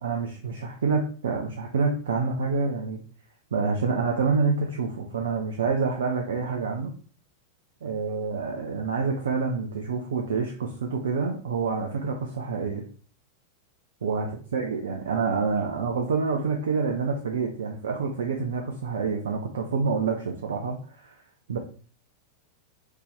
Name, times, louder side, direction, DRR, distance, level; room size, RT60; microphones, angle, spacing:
voice 1, 0.0-3.0 3.5-6.9 7.8-12.8 14.0-14.3 14.5-21.2 21.5-21.6, right 5 dB, 65° right, 2 dB, 0.6 m, -27 dB
4.3 x 3.4 x 3.3 m, 0.41 s
figure-of-eight pair, 90°, 0 cm